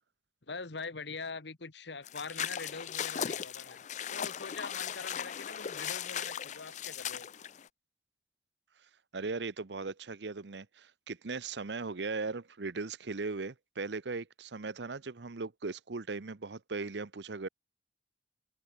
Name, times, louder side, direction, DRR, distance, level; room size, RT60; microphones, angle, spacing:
voice 1, 0.5-3.8 4.1-7.3, left 4 dB, 80° left, 1.5 m, -43 dB
sound 1, 2.0-7.7, left 9 dB, 45° left, 0.4 m, -38 dB
voice 2, 9.1-17.5, right 4 dB, 80° right, 0.9 m, -38 dB
open air
head